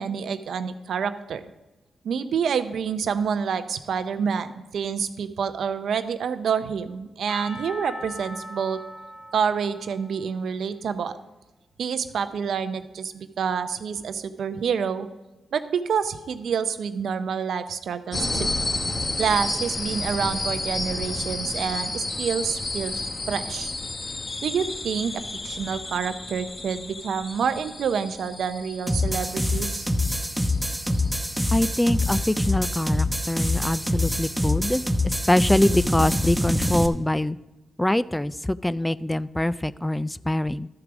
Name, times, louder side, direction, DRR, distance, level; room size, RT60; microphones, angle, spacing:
voice 1, 0.0-1.4 2.0-8.8 9.3-11.1 11.8-15.1 15.5-18.5 19.2-23.7 24.4-29.9, right 6 dB, 75° right, 11 dB, 0.6 m, -28 dB
Percussion / Church bell, 7.3-10.9, equal, 70° left, 3.9 m, -41 dB
sound 1, 18.1-32.4, left 2 dB, 35° left, 0.9 m, -32 dB
sound 2, 28.9-36.9, left 1 dB, 5° right, 0.8 m, -25 dB
voice 2, 31.5-37.4 37.8-40.7, left 1 dB, 10° left, 17 dB, 0.3 m, -24 dB
12.5 x 4.8 x 6.0 m, 1.1 s
supercardioid pair, 55°, 0 cm